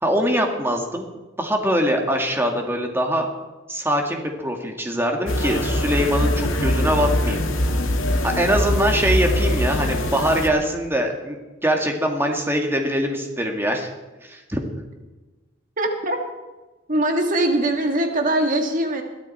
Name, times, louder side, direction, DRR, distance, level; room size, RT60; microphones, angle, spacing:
voice 1, 0.0-1.1 1.4-3.3 3.7-7.4 8.2-13.9 14.2-14.6, equal, 10° right, 2 dB, 2.1 m, -23 dB
sound 1, 5.3-10.5, left 1 dB, 80° left, 2.0 m, -22 dB
voice 2, 15.8-16.2 16.9-19.0, right 1 dB, 40° right, 3 dB, 2.0 m, -21 dB
22.0 x 13.0 x 4.4 m, 1.2 s
head